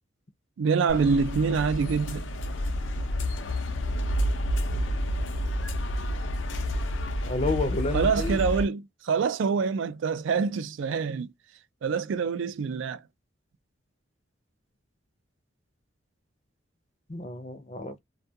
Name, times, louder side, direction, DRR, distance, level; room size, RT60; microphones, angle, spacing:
voice 1, 0.6-2.2 7.9-11.3 11.8-13.0, right 5 dB, 85° right, 0.4 m, -26 dB
sound 1, 0.9-8.6, equal, 85° left, 0.6 m, -29 dB
voice 2, 7.2-8.4 17.1-18.0, left 3 dB, 35° left, 0.5 m, -30 dB
2.3 x 2.2 x 2.7 m
head